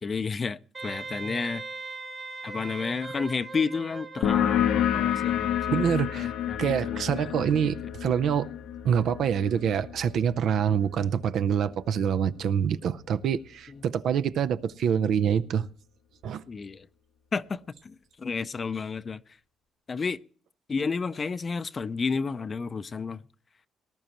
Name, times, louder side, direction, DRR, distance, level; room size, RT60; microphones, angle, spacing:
voice 1, 0.0-1.6 2.4-7.7 13.7-13.8 16.5-16.9 17.3-19.2 19.9-20.2 20.7-23.2, left 5 dB, 35° left, 0.5 m, -32 dB
Wind instrument woodwind instrument, 0.7-5.0, right 3 dB, 35° right, 1.4 m, -39 dB
sound 1, 4.2-11.5, left 10 dB, 85° left, 0.8 m, -29 dB
voice 2, 5.7-6.3 6.6-8.5 8.8-15.7 16.2-16.4, right 8 dB, 70° right, 0.6 m, -26 dB
19.0 x 11.0 x 3.0 m
cardioid pair, 90°, 0 cm